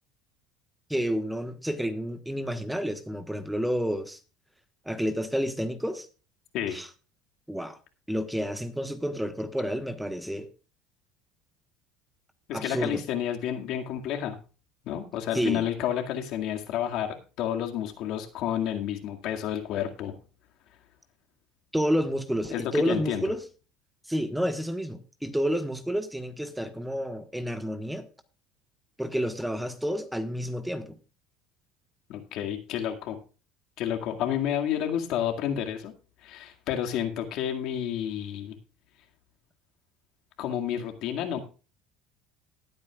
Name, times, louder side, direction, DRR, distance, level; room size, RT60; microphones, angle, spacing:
voice 1, 0.9-4.2 4.8-6.1 6.7-6.9 7.5-7.8 8.1-10.5 12.5-13.0 15.3-15.7 21.7-23.4 24.1-28.1 29.0-31.0, equal, 5° right, 1.3 m, -30 dB
voice 2, 12.5-14.4 14.8-20.1 22.5-23.3 32.1-33.2 33.8-35.9 36.2-38.6 40.4-41.4, left 10 dB, 65° left, 2.1 m, -30 dB
19.5 x 8.8 x 2.4 m
supercardioid pair, 110°, 0 cm